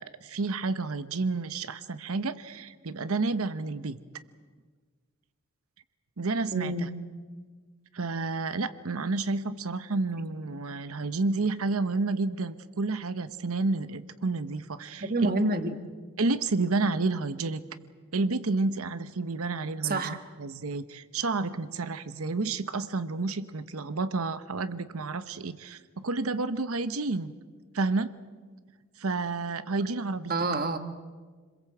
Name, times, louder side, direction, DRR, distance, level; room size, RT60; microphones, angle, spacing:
voice 1, 0.0-4.0 6.2-6.9 7.9-15.3 16.2-17.6 18.1-27.3 27.7-28.1 29.0-30.3, right 3 dB, 75° right, 12 dB, 0.9 m, -30 dB
voice 2, 6.5-6.9 10.2-10.3 15.0-15.8 19.8-20.2 30.3-30.8, right 2 dB, 40° right, 9 dB, 1.5 m, -28 dB
27.0 x 22.0 x 7.9 m, 1.5 s
head